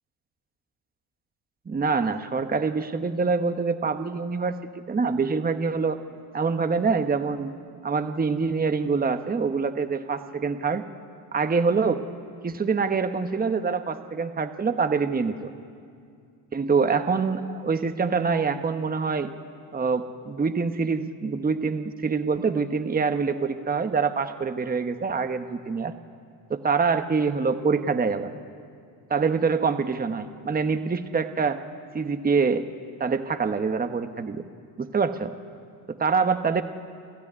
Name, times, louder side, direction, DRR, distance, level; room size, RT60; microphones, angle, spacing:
voice 1, 1.7-6.0 6.3-7.5 7.8-10.8 11.3-12.0 12.4-15.5 16.5-19.3 19.7-25.9 26.5-28.3 29.1-31.6 31.9-32.7 33.0-34.4 34.8-35.3 35.9-36.6, right 5 dB, 20° right, 9 dB, 1.2 m, -25 dB
29.5 x 13.5 x 9.8 m, 2.3 s
supercardioid pair, 80°, 44 cm